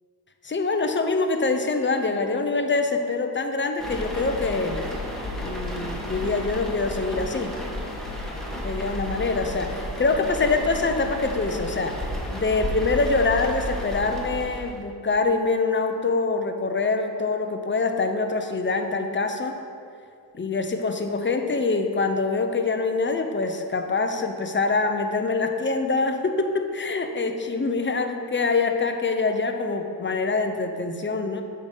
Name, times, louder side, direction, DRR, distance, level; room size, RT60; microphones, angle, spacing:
voice 1, 0.4-4.8 5.4-7.6 8.6-12.0 12.3-19.6 20.3-31.4, left 3 dB, 25° left, 6 dB, 0.7 m, -25 dB
sound 1, 3.8-14.8, left 1 dB, ahead, 1.4 m, -32 dB
9.1 x 3.8 x 5.5 m, 2.4 s
cardioid pair, 75°, 46 cm